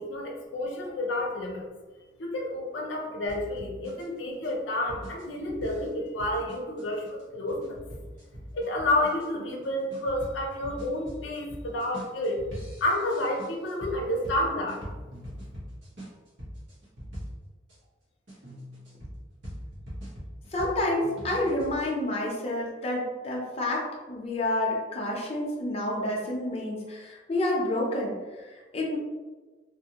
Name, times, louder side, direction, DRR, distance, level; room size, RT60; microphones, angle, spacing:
voice 1, 0.0-1.6 2.2-7.8 8.5-12.4 12.8-14.8, left 1 dB, 90° left, 0 dB, 0.6 m, -30 dB
sound 1, 3.3-17.8 18.3-21.7, equal, 85° right, 1.0 m, -42 dB
voice 2, 20.5-29.0, left 1 dB, 35° left, -3 dB, 0.5 m, -29 dB
2.7 x 2.5 x 2.8 m, 1.3 s
head